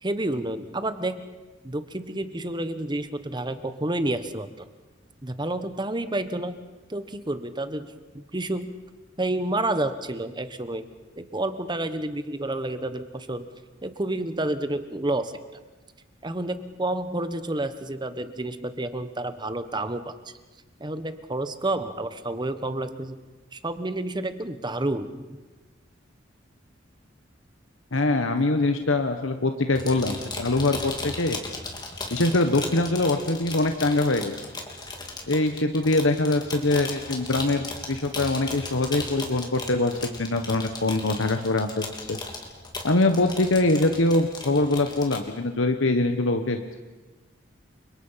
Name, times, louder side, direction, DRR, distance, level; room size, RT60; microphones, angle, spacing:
voice 1, 0.0-1.2 1.6-4.7 5.2-6.5 6.9-7.9 8.1-8.7 9.2-10.9 11.2-13.4 13.8-15.3 16.2-20.1 20.8-23.2 23.5-25.4, right 1 dB, 25° right, 11 dB, 1.2 m, -29 dB
voice 2, 27.9-31.4 32.1-34.3 35.3-42.2 42.8-46.6, left 2 dB, 85° left, 7 dB, 1.3 m, -23 dB
sound 1, 29.7-45.2, left 3 dB, 20° left, 3.3 m, -36 dB
29.5 x 25.5 x 5.8 m, 1.2 s
head